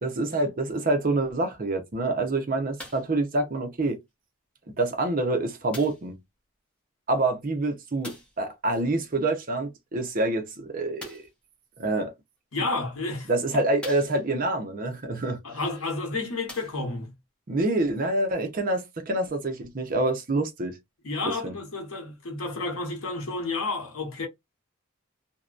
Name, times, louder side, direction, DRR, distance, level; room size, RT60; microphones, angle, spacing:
voice 1, 0.0-4.0 4.8-6.1 7.1-11.3 11.8-12.1 13.3-15.4 17.5-20.8 21.4-21.5, right 2 dB, 40° right, 0.6 m, -26 dB
sound 1, 2.8-3.2 4.1-4.2 5.7-6.1 8.0-8.4 11.0-11.4 12.4-12.5 13.1-13.2 13.8-14.5 15.8-15.9 16.4-17.1 17.9-18.0, left 1 dB, 5° left, 0.6 m, -44 dB
voice 2, 12.5-13.3 15.4-17.1 21.0-24.3, left 3 dB, 85° left, 0.9 m, -31 dB
2.6 x 2.1 x 2.3 m
head